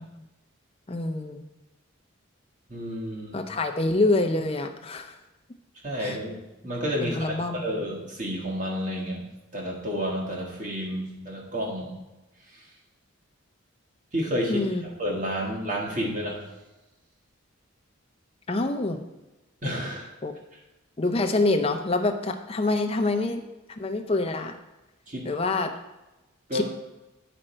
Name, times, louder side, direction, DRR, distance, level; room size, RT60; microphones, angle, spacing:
voice 1, 0.9-1.4 3.3-5.2 6.0-6.2 7.0-7.7 14.5-14.8 18.5-19.0 20.2-20.4 21.0-23.4 23.7-24.6 25.2-25.7 26.5-26.6, left 2 dB, 25° left, 5 dB, 0.6 m, -26 dB
voice 2, 2.7-3.4 5.8-9.2 9.5-11.9 14.1-16.4 19.6-20.1 25.1-25.3 26.5-26.6, equal, 35° right, -2 dB, 1.6 m, -30 dB
8.9 x 5.1 x 4.4 m, 1.0 s
head